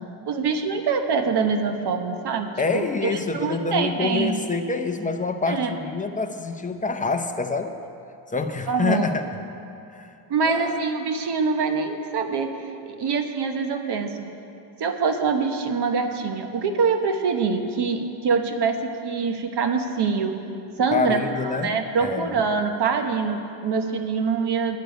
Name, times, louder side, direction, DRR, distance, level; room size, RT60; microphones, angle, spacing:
voice 1, 0.2-4.3 5.5-5.7 8.7-9.1 10.3-12.5 12.8-14.3 14.8-20.4 20.8-21.2 21.5-24.8, right 5 dB, 55° right, 6 dB, 1.0 m, -24 dB
voice 2, 2.6-7.7 8.3-9.2 9.9-10.1 10.4-10.8 20.9-21.7 22.0-22.4, left 4 dB, 15° left, 6 dB, 0.6 m, -26 dB
10.5 x 6.8 x 9.3 m, 2.6 s
cardioid pair, 125°, 49 cm